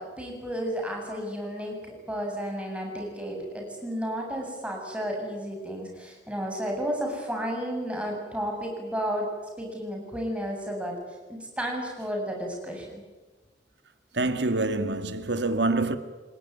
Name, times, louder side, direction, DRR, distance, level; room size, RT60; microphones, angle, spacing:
voice 1, 0.0-9.3 9.6-10.9 11.3-13.0, equal, 5° right, 7.8 m, -32 dB
voice 2, 14.1-16.0, right 2 dB, 65° right, 2.1 m, -26 dB
29.5 x 19.0 x 9.7 m
head